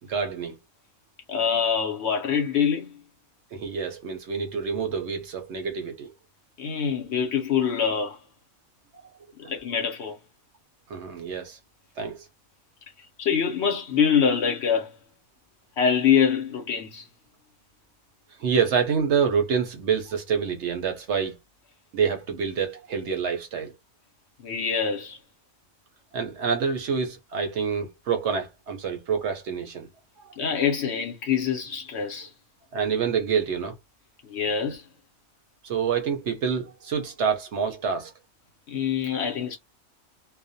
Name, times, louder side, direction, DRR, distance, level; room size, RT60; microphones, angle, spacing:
voice 1, 0.1-0.6 3.5-6.1 8.9-9.1 9.4-9.5 10.9-11.6 12.0-12.3 18.4-21.4 21.9-23.7 26.1-29.9 30.2-30.3 32.7-33.8 35.6-38.1, right 6 dB, 65° right, 0.8 m, -27 dB
voice 2, 1.3-2.9 6.6-8.2 9.4-10.2 13.2-14.9 15.8-17.1 24.4-25.2 30.4-32.3 34.2-34.9 38.7-39.6, left 7 dB, 65° left, 0.8 m, -25 dB
2.4 x 2.1 x 2.5 m
omnidirectional pair, 1.4 m